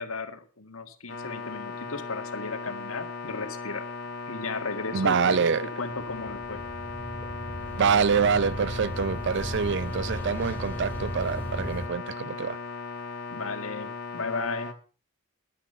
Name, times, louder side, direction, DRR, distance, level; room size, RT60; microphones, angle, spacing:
voice 1, 0.0-3.9 4.3-5.4 5.8-6.6 13.3-14.7, left 3 dB, 75° left, 1.8 m, -35 dB
sound 1, 1.1-14.7, left 4 dB, 55° left, 2.6 m, -37 dB
voice 2, 4.9-5.7 7.7-12.6, right 6 dB, 55° right, 0.5 m, -25 dB
sound 2, 6.0-11.9, equal, 10° left, 2.7 m, -36 dB
11.5 x 10.0 x 5.5 m
head